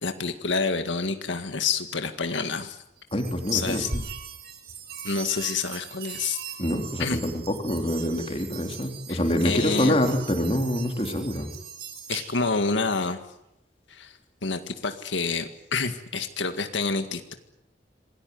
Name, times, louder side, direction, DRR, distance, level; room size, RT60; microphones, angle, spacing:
voice 1, 0.0-2.8 3.5-3.9 5.0-6.4 7.0-7.2 9.1-9.2 9.4-10.0 12.1-13.2 13.9-14.1 14.4-17.3, left 4 dB, 90° left, 8 dB, 1.9 m, -28 dB
voice 2, 3.1-3.9 6.6-11.5, equal, 30° left, 4 dB, 3.5 m, -26 dB
sound 1, 3.1-12.6, right 5 dB, 55° right, 3.3 m, -39 dB
27.0 x 19.0 x 9.5 m, 0.81 s
head